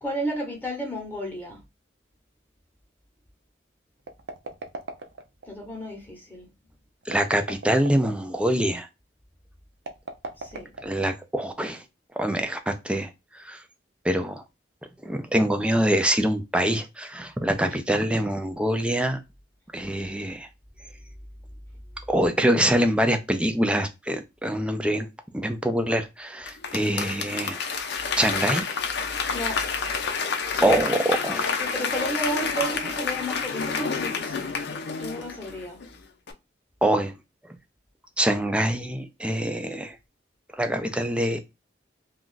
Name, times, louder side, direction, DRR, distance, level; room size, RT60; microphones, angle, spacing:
voice 1, 0.0-1.6 5.4-6.5 10.4-10.7 17.7-17.8 29.3-29.6 30.5-30.8 31.3-34.5 35.0-35.8, equal, 10° left, 0.9 m, -33 dB
sound 1, 4.0-5.5 7.0-8.2 9.8-11.3, right 3 dB, 65° right, 0.6 m, -38 dB
voice 2, 7.1-8.9 10.8-11.8 12.2-13.1 13.4-13.6 14.0-14.4 15.0-19.2 19.7-20.5 22.1-25.1 25.3-27.6 28.2-28.6 30.6-31.5 36.8-37.1 38.2-40.0 40.6-41.4, right 1 dB, 5° right, 0.4 m, -24 dB
Applause / Crowd, 26.5-35.9 36.3-36.4, left 5 dB, 65° left, 0.5 m, -29 dB
2.5 x 2.3 x 3.7 m
head